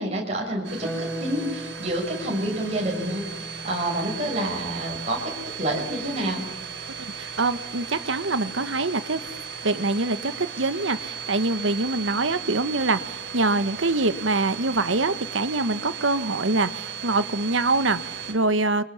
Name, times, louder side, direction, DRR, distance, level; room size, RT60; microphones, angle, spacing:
voice 1, 0.0-3.2 3.6-6.4, right 1 dB, 35° right, -1 dB, 6.2 m, -28 dB
Domestic sounds home sounds, 0.6-18.3, right 7 dB, 60° right, 5.5 m, -36 dB
Harp, 0.8-7.3 9.0-9.9, right 1 dB, 5° left, 3.4 m, -41 dB
voice 2, 7.0-9.2 9.6-18.8, right 2 dB, 85° right, 12 dB, 1.3 m, -24 dB
29.5 x 25.0 x 7.1 m, 0.82 s
head